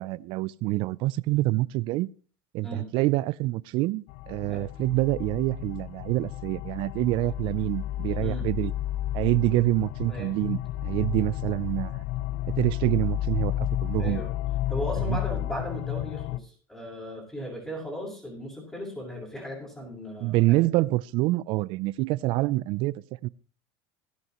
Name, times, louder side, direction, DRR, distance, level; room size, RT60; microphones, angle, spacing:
voice 1, 0.0-2.1 2.5-8.7 9.1-12.0 12.5-14.2 15.1-15.2 20.2-23.3, right 19 dB, 60° right, 0.5 m, -26 dB
sound 1, 4.1-16.4, left 14 dB, 65° left, 0.5 m, -32 dB
voice 2, 14.0-14.3 14.7-20.6, equal, 10° left, 6.5 m, -36 dB
17.5 x 10.5 x 3.1 m
supercardioid pair, 110°, 10 cm